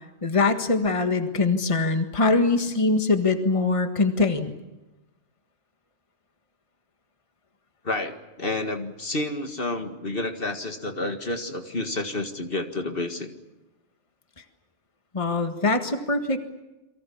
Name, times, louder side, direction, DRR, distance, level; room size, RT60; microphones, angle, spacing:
voice 1, 0.2-4.5 15.1-16.4, left 3 dB, 30° left, 6 dB, 1.7 m, -23 dB
voice 2, 7.8-13.3, left 2 dB, 55° left, 6 dB, 2.0 m, -30 dB
29.0 x 23.0 x 7.1 m, 1.0 s
omnidirectional pair, 1.1 m